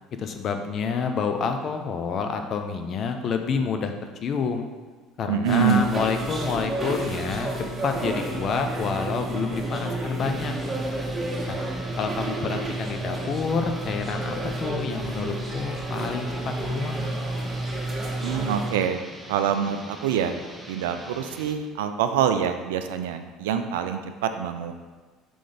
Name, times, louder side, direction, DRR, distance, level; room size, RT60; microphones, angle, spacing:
voice 1, 0.2-3.9 4.2-4.7 5.2-10.6 11.5-11.6 12.0-14.3 14.6-17.0, left 5 dB, 45° left, 6 dB, 0.7 m, -28 dB
voice 2, 5.3-5.9 18.2-19.0 19.3-20.4 20.7-24.7, right 8 dB, 75° right, 7 dB, 0.4 m, -25 dB
sound 1, 5.4-18.7, right 2 dB, 25° right, 1.5 m, -30 dB
sound 2, 10.2-21.6, equal, ahead, 0.8 m, -43 dB
5.1 x 3.8 x 5.0 m, 1.4 s
hypercardioid pair, 65°, 0 cm